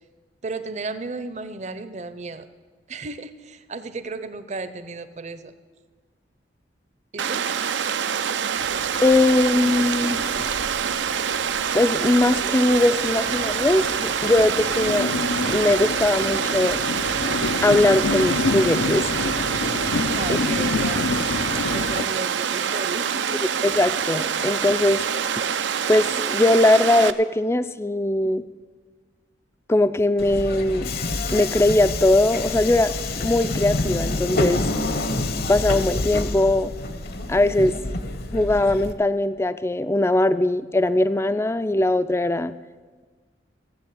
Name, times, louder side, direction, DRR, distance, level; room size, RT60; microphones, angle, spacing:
voice 1, 0.4-2.5 2.9-5.5 7.1-7.5 20.1-21.2 21.7-23.4, right 3 dB, 40° right, 13 dB, 0.7 m, -34 dB
Water, 7.2-27.1, right 7 dB, 75° right, 0.6 m, -26 dB
Train, 8.6-22.0, left 3 dB, 80° left, 0.7 m, -29 dB
voice 2, 9.0-10.2 11.7-15.1 15.5-16.8 17.6-19.2 20.3-20.4 23.6-25.0 25.9-28.4 29.7-30.9 31.3-34.7 35.5-36.7 37.3-37.7 38.3-42.5, left 1 dB, 15° left, 13 dB, 0.4 m, -20 dB
Subway metro underground, 30.2-38.9, left 2 dB, 55° left, 1.0 m, -27 dB
15.0 x 8.1 x 8.6 m, 1.4 s
head